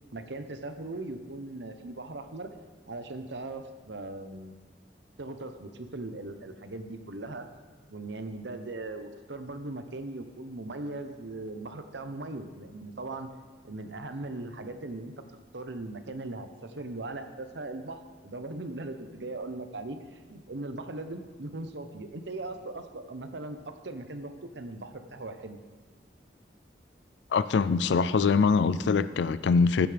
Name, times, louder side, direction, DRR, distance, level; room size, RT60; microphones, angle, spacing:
voice 1, 0.1-2.5 2.9-4.5 5.2-7.5 7.9-13.3 13.6-15.1 15.5-25.6, right 2 dB, 75° right, 8 dB, 0.9 m, -39 dB
voice 2, 27.3-29.9, left 5 dB, 75° left, 15 dB, 0.4 m, -23 dB
15.5 x 11.0 x 3.5 m, 1.4 s
head